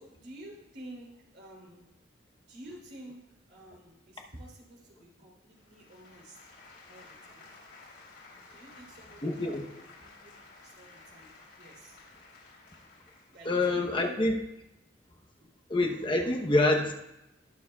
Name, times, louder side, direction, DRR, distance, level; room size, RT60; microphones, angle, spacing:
voice 1, 0.0-1.8 2.5-3.2 3.5-6.4 6.9-7.5 8.5-9.6 10.0-10.3 10.6-12.0 13.3-14.1 15.4-15.5, right 1 dB, 65° right, -2 dB, 3.1 m, -50 dB
sound 1, 5.5-13.6, left 3 dB, 85° left, 3.1 m, -54 dB
voice 2, 9.2-9.7 13.4-14.4 15.7-16.9, left 2 dB, 30° left, 2 dB, 0.8 m, -26 dB
20.0 x 6.9 x 2.3 m, 0.92 s
head